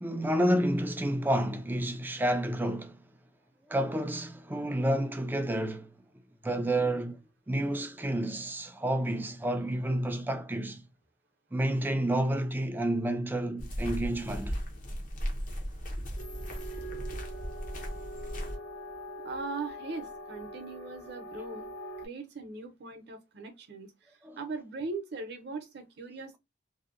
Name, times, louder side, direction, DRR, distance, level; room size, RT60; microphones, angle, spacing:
voice 1, 0.0-3.0 3.7-5.9 6.4-7.2 7.5-10.8 11.5-14.5 24.2-24.4, right 1 dB, 10° right, 0.3 m, -30 dB
sound 1, 13.6-18.6, equal, 45° left, 0.6 m, -36 dB
sound 2, 16.2-22.1, equal, 65° left, 1.0 m, -43 dB
voice 2, 19.2-21.7 22.0-26.4, right 3 dB, 60° right, 0.6 m, -40 dB
2.7 x 2.1 x 2.4 m
head